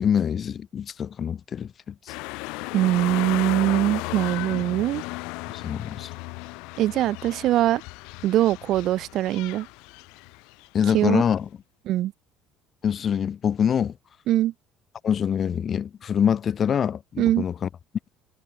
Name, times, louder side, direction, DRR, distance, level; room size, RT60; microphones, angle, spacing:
voice 1, 0.0-2.1 5.5-6.1 10.7-11.5 12.8-13.9 15.0-17.7, left 8 dB, 30° left, 1.1 m, -25 dB
sound 1, 2.1-10.9 11.3-11.4, left 27 dB, 80° left, 2.0 m, -35 dB
voice 2, 2.7-5.0 6.8-7.8 8.2-9.7 10.9-11.2 11.9-12.1 14.3-14.5 17.2-17.4, right 14 dB, 45° right, 0.5 m, -22 dB
cardioid pair, 170°, 0 cm